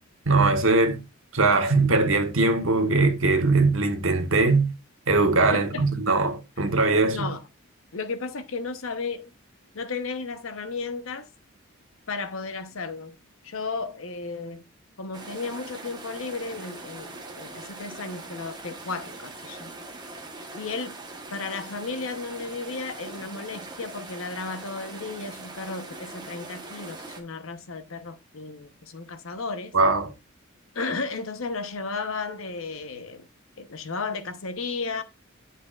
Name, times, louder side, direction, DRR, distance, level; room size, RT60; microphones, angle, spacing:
voice 1, 0.3-1.0 1.3-4.7 5.1-7.3 29.7-30.1, right 3 dB, 65° right, 1.3 m, -21 dB
voice 2, 5.5-5.8 7.1-7.5 7.9-9.3 9.7-11.3 12.1-13.2 13.4-14.6 15.0-19.7 20.5-21.0 21.3-29.7 30.7-33.3 33.6-35.0, left 4 dB, 70° left, 0.9 m, -34 dB
sound 1, 15.1-27.2, right 2 dB, 20° right, 1.1 m, -41 dB
9.6 x 5.6 x 2.4 m
head